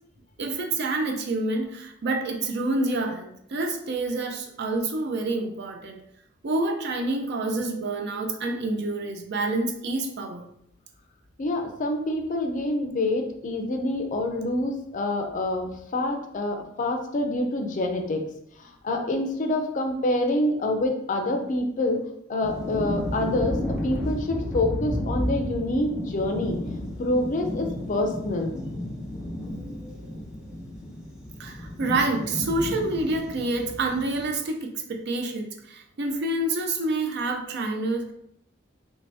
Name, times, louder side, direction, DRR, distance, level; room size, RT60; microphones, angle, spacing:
voice 1, 0.4-6.0 6.4-10.5 29.5-30.2 31.4-38.1, right 2 dB, 60° right, 4 dB, 0.5 m, -28 dB
voice 2, 11.4-18.2 18.6-22.0 22.3-26.6 27.0-28.5, left 1 dB, 40° left, 3 dB, 0.4 m, -27 dB
sound 1, 22.4-34.3, left 1 dB, 5° right, 0.7 m, -33 dB
3.0 x 2.7 x 3.3 m, 0.74 s
head